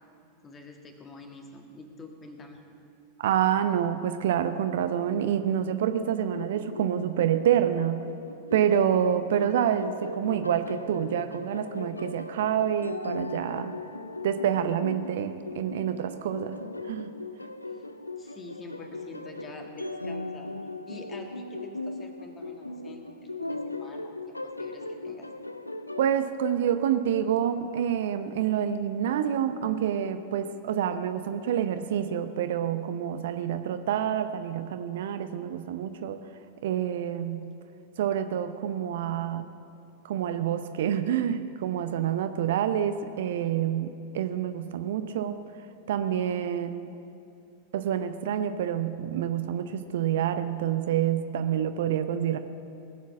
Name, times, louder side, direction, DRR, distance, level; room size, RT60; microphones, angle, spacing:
voice 1, 0.4-2.6 17.7-17.8 18.2-20.5 20.8-25.3 43.4-43.6, left 2 dB, 20° left, 4 dB, 1.8 m, -46 dB
voice 2, 3.2-8.0 8.5-13.7 14.2-16.6 16.9-17.1 26.0-36.2 36.6-37.5 38.0-39.6 40.0-45.4 45.9-46.9 47.7-52.4, right 9 dB, 55° right, 10 dB, 0.6 m, -27 dB
sound 1, 6.3-26.2, left 2 dB, 85° left, 0.5 m, -38 dB
19.0 x 7.4 x 7.2 m, 2.6 s
figure-of-eight pair, 90°, 0 cm